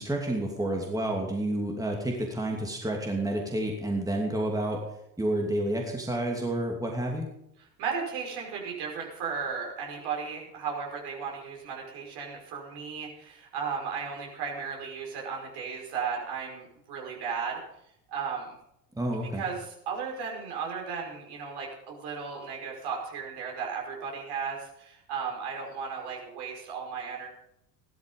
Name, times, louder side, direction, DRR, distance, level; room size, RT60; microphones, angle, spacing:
voice 1, 0.0-4.8 5.2-7.3 18.9-19.5, right 1 dB, 5° right, 1 dB, 2.7 m, -29 dB
voice 2, 7.8-17.6 18.1-18.6 19.4-27.3, right 6 dB, 50° right, 0 dB, 5.4 m, -35 dB
15.0 x 12.5 x 5.4 m, 0.78 s
hypercardioid pair, 75°, 49 cm